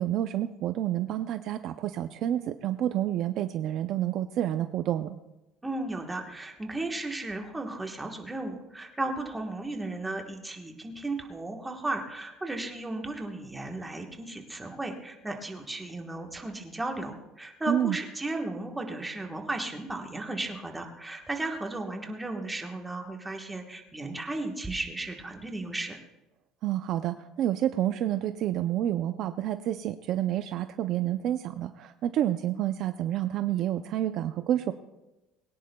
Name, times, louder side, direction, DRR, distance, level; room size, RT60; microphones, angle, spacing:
voice 1, 0.0-5.2 17.7-18.0 26.6-34.7, right 12 dB, 40° right, 9 dB, 0.4 m, -29 dB
voice 2, 5.6-26.0, right 2 dB, 5° right, 2 dB, 1.2 m, -35 dB
21.0 x 17.5 x 2.3 m, 1.0 s
cardioid pair, 180°, 0 cm